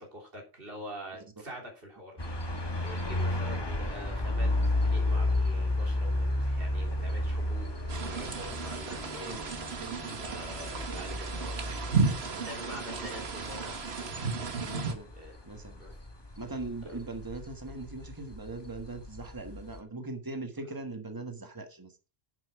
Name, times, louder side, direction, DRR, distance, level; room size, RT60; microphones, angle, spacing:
voice 1, 0.0-2.3 2.8-9.4 10.1-11.7 12.2-14.2 15.1-15.5 15.8-16.0 16.9-17.0 20.6-20.7, equal, 60° right, 3.8 m, -45 dB
sound 1, 2.2-19.8, left 1 dB, 25° left, 1.3 m, -33 dB
sound 2, 6.8-10.3, left 3 dB, 50° left, 2.3 m, -54 dB
sound 3, 7.9-14.9, right 4 dB, 80° right, 1.6 m, -34 dB
voice 2, 9.8-10.4 12.3-12.5 14.6-15.1 15.5-15.8 16.4-21.9, right 2 dB, 20° right, 1.5 m, -40 dB
10.5 x 7.8 x 4.7 m
omnidirectional pair, 1.0 m